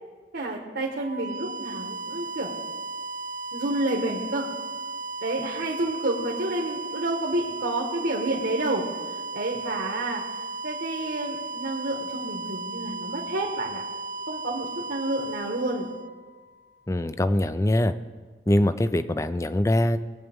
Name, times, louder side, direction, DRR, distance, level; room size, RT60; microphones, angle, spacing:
voice 1, 0.3-2.5 3.5-4.5 5.2-8.8 9.1-13.8 14.3-15.9 19.1-19.2, right 2 dB, 75° right, -1 dB, 1.4 m, -29 dB
sound 1, 0.9-16.7, right 3 dB, 45° right, 0.4 m, -35 dB
voice 2, 16.9-17.9 18.5-20.0, left 1 dB, 15° left, 13 dB, 0.4 m, -23 dB
20.0 x 8.3 x 3.6 m, 1.5 s
head